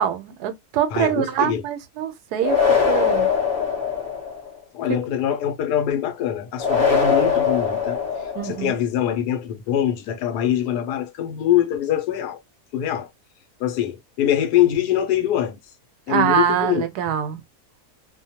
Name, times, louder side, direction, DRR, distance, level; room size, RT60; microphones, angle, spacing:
voice 1, 0.0-3.3 8.3-8.8 16.1-17.4, right 9 dB, 80° right, 1.1 m, -24 dB
voice 2, 0.9-1.6 4.7-8.0 8.2-12.4 12.7-13.1 13.6-15.6 16.1-16.8, left 11 dB, 85° left, 1.2 m, -23 dB
sound 1, 2.4-4.5 6.6-8.7, left 6 dB, 45° left, 0.8 m, -21 dB
2.8 x 2.1 x 2.7 m
omnidirectional pair, 1.7 m